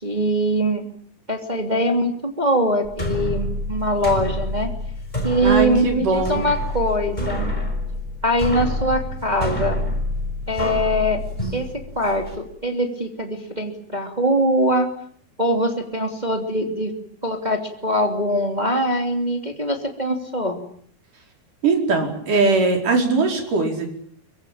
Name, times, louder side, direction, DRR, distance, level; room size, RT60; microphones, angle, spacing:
voice 1, 0.0-0.8 1.3-4.7 5.2-7.5 8.2-9.8 10.5-11.2 11.5-14.9 15.4-16.9 17.2-20.6, equal, 10° right, 4 dB, 2.4 m, -22 dB
sound 1, 2.8-12.3, left 1 dB, 10° left, 5.4 m, -28 dB
voice 2, 5.4-6.5 21.6-23.9, right 3 dB, 50° right, 3 dB, 6.3 m, -20 dB
24.0 x 24.0 x 8.8 m, 0.63 s
omnidirectional pair, 4.7 m